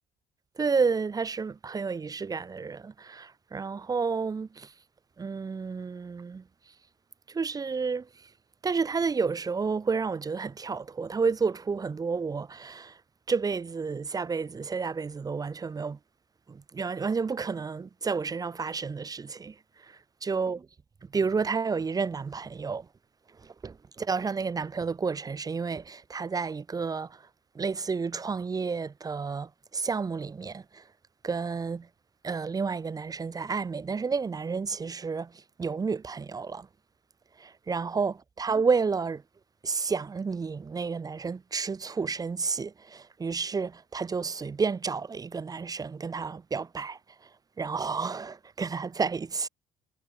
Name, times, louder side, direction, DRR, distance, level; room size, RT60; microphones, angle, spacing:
voice 1, 0.6-4.7 5.2-6.4 7.3-8.1 8.6-13.0 13.3-16.0 16.5-19.5 19.9-20.7 21.1-22.9 23.4-27.2 27.5-30.8 31.2-31.9 32.2-35.3 35.6-36.7 37.4-39.2 39.6-47.0 47.6-49.5, right 5 dB, 20° right, 0.7 m, -31 dB
cardioid pair, 110°, 17 cm